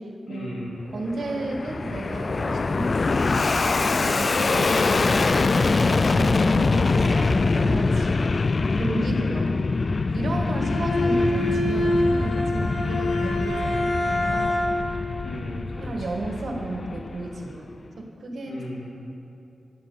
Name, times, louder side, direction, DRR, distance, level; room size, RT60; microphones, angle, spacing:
voice 1, 0.3-0.8 9.0-9.5 10.3-10.5 13.6-13.8 15.2-15.9 18.5-18.9, left 1 dB, 65° left, -4 dB, 3.1 m, -36 dB
Fixed-wing aircraft airplane, 0.9-17.6, left 3 dB, 45° left, 0.3 m, -24 dB
voice 2, 0.9-8.2 8.8-9.5 10.1-14.6 15.8-18.7, right 2 dB, 60° right, 2 dB, 1.7 m, -32 dB
Bowed string instrument, 10.6-14.9, left 1 dB, 80° left, 3.7 m, -25 dB
11.0 x 7.8 x 8.6 m, 2.8 s
cardioid pair, 85°, 0 cm